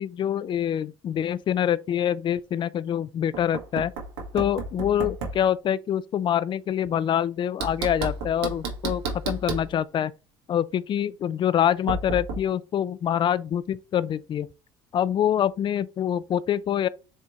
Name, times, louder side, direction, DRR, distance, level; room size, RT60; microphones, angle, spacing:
voice 1, 0.0-3.9 4.3-10.1 10.5-14.5 14.9-16.9, left 10 dB, 40° left, 0.4 m, -25 dB
Knock, 3.3-5.4 7.6-9.7 11.9-12.4, right 3 dB, 80° right, 1.2 m, -32 dB
4.3 x 3.6 x 2.9 m
hypercardioid pair, 70°, 13 cm